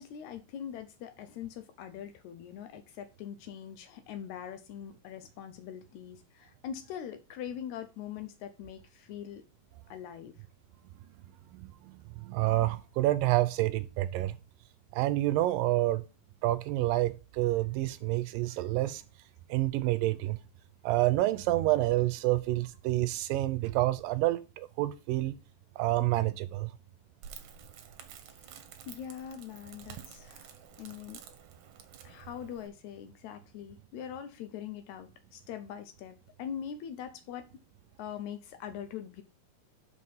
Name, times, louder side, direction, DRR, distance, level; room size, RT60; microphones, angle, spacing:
voice 1, 0.0-9.4 9.9-10.3 28.2-28.5 28.9-31.2 32.0-37.6 38.0-39.2, left 9 dB, 80° left, 1.7 m, -42 dB
voice 2, 11.5-14.4 14.9-16.1 16.4-19.0 19.5-20.4 20.8-25.4 25.8-26.7, right 16 dB, 85° right, 2.2 m, -28 dB
Crackle, 27.2-32.7, right 8 dB, 65° right, 2.1 m, -50 dB
5.8 x 4.7 x 5.6 m
omnidirectional pair, 4.0 m